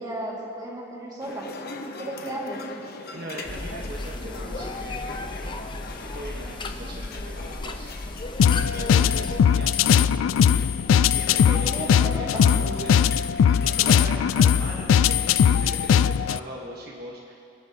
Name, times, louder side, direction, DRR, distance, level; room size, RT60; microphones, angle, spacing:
voice 1, 0.0-2.6 11.3-12.8, right 1 dB, 20° right, -4 dB, 2.2 m, -35 dB
Resturant Ambience Tandoori, 1.2-14.3, left 2 dB, 55° left, 0.9 m, -41 dB
voice 2, 3.1-5.4 5.9-7.9 8.6-17.3, right 1 dB, 55° right, -2 dB, 1.3 m, -40 dB
sound 1, 3.4-9.4, left 2 dB, 25° left, 0.6 m, -35 dB
sound 2, 8.4-16.4, left 8 dB, 80° left, 0.3 m, -20 dB
26.5 x 10.5 x 2.9 m, 2.4 s
head